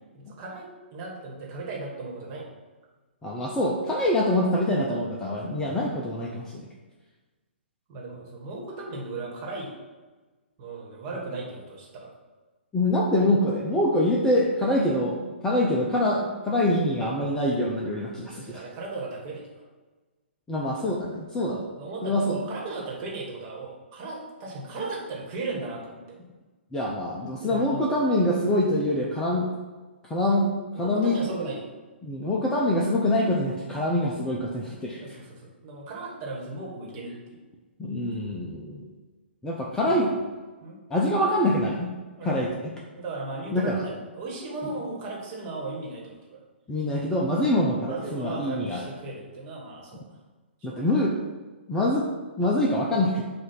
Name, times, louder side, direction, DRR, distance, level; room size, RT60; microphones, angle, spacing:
voice 1, 0.1-2.5 7.9-9.7 10.6-12.2 18.3-19.6 21.5-26.2 27.4-28.1 28.4-28.5 30.7-31.7 35.0-37.4 39.8-40.2 40.6-40.8 42.2-42.5 42.9-46.4 47.9-50.0 50.6-50.9, right 3 dB, 30° right, -3 dB, 1.6 m, -36 dB
voice 2, 3.2-6.5 12.7-18.6 20.5-21.6 22.0-22.4 26.7-29.5 30.1-30.5 30.8-31.2 32.0-35.0 37.8-38.9 39.4-40.1 40.9-41.9 42.2-42.5 43.5-43.8 46.7-48.9 50.6-51.2 51.7-52.1 52.4-53.2, left 1 dB, 10° left, -3 dB, 0.6 m, -25 dB
7.7 x 2.7 x 5.7 m, 1.3 s
figure-of-eight pair, 125°, 6 cm